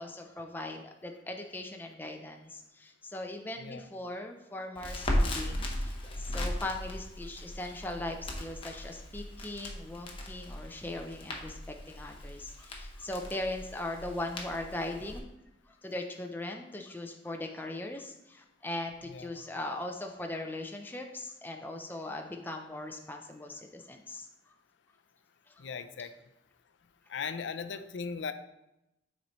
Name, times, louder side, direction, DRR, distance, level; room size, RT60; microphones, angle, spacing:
voice 1, 0.0-15.3 15.7-24.3 25.5-25.6, left 1 dB, 10° left, 3 dB, 0.4 m, -39 dB
Crackle, 4.8-15.2, left 1 dB, 30° left, 0.9 m, -37 dB
voice 2, 25.6-26.1 27.1-28.3, left 5 dB, 85° left, 10 dB, 0.5 m, -38 dB
9.2 x 4.2 x 3.0 m, 0.89 s
head